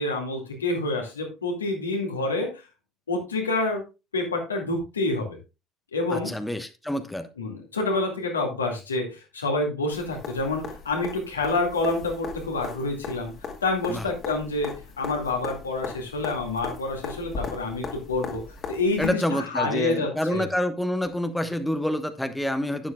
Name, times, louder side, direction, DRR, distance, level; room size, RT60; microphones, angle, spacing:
voice 1, 0.0-2.6 3.1-3.8 4.1-5.4 5.9-6.3 7.4-13.3 13.6-14.7 15.0-18.4 18.7-20.5, left 2 dB, 80° left, 1 dB, 2.1 m, -27 dB
voice 2, 6.1-7.3 13.9-14.1 19.0-22.9, left 1 dB, 5° left, 8 dB, 1.1 m, -27 dB
sound 1, 9.9-19.1 21.1-21.2, left 5 dB, 40° left, 2.2 m, -38 dB
11.5 x 9.8 x 2.3 m, 0.27 s
figure-of-eight pair, 60°, 0 cm